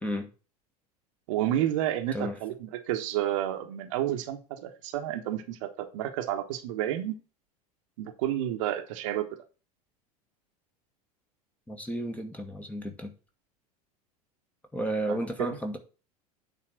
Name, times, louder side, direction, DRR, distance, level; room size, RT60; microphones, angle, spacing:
voice 1, 1.3-7.2 8.0-9.3 15.1-15.5, right 12 dB, 55° right, 1.2 m, -30 dB
voice 2, 11.7-13.1 14.7-15.8, right 1 dB, 5° left, 1.5 m, -32 dB
9.1 x 3.8 x 6.2 m
figure-of-eight pair, 80°, 20 cm